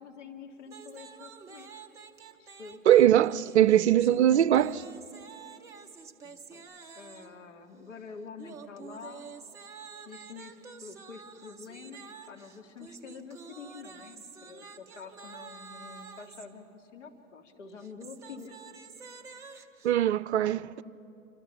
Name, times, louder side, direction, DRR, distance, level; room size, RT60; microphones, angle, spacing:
voice 1, 0.0-1.7 2.4-2.8 6.2-6.7 7.0-9.3 10.1-18.6, left 5 dB, 60° left, 2.5 m, -47 dB
sound 1, 0.7-7.4 8.4-16.5 17.7-19.9, right 5 dB, 10° right, 0.5 m, -49 dB
voice 2, 2.9-4.8 19.8-20.8, right 11 dB, 55° right, 0.6 m, -21 dB
27.0 x 26.0 x 6.0 m
figure-of-eight pair, 110°, 41 cm